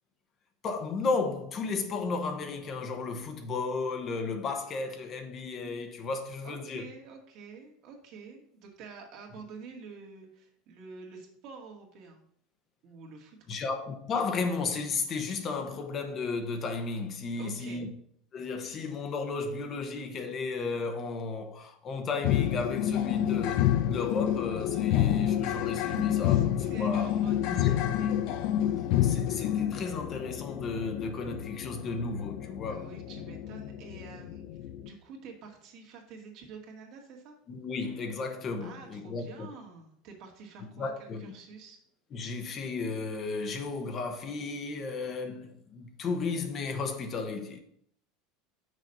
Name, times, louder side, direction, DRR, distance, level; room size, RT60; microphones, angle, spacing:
voice 1, 0.6-6.8 13.5-17.9 18.3-27.1 27.5-27.7 28.1-28.2 29.0-32.9 37.5-39.5 40.8-41.3 42.1-47.6, left 4 dB, 35° left, 1.0 m, -34 dB
voice 2, 6.4-12.3 12.8-13.5 17.4-17.8 26.2-28.1 32.7-37.3 38.6-41.8, right 4 dB, 60° right, 1.9 m, -48 dB
sound 1, 22.2-34.9, left 11 dB, 65° left, 0.5 m, -29 dB
6.3 x 4.2 x 5.4 m
supercardioid pair, 125°, 0 cm